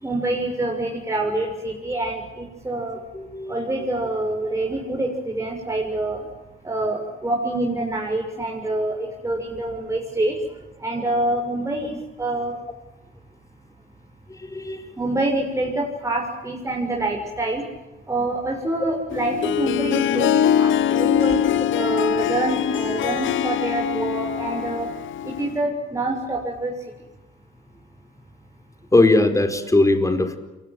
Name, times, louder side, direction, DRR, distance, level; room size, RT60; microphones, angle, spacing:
voice 1, 0.0-3.0 3.5-6.2 6.6-10.3 10.8-11.9 12.2-12.6 15.0-17.6 18.1-21.4 21.7-24.9 25.4-26.7, right 2 dB, 15° right, -1 dB, 6.9 m, -26 dB
voice 2, 3.1-3.6 14.3-15.0 28.9-30.4, left 2 dB, 15° left, 8 dB, 4.5 m, -19 dB
Harp, 19.1-25.6, left 10 dB, 75° left, 1.0 m, -23 dB
28.5 x 23.0 x 7.9 m, 1.1 s
cardioid pair, 90°, 20 cm